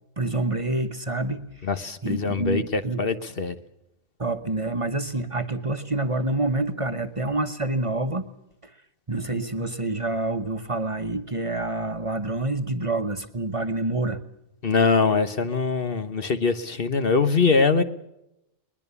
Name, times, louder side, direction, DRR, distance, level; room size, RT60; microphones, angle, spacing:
voice 1, 0.2-1.5 2.0-3.0 4.2-8.3 9.1-14.2, right 2 dB, 30° right, 1.1 m, -27 dB
voice 2, 1.6-3.5 14.6-17.8, left 4 dB, 55° left, 1.3 m, -23 dB
22.0 x 21.0 x 7.0 m
omnidirectional pair, 1.2 m